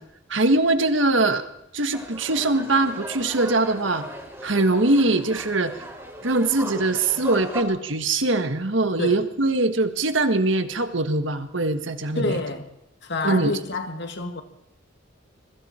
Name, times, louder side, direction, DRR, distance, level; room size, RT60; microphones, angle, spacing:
voice 1, 0.3-1.4 1.7-4.1 4.4-5.7 6.2-12.4 13.2-13.5, right 2 dB, 70° right, 1.6 m, -22 dB
sound 1, 1.9-7.6, right 1 dB, 15° right, 3.6 m, -37 dB
voice 2, 12.2-12.7 13.0-14.4, left 2 dB, 60° left, 2.2 m, -28 dB
25.5 x 22.5 x 4.5 m
head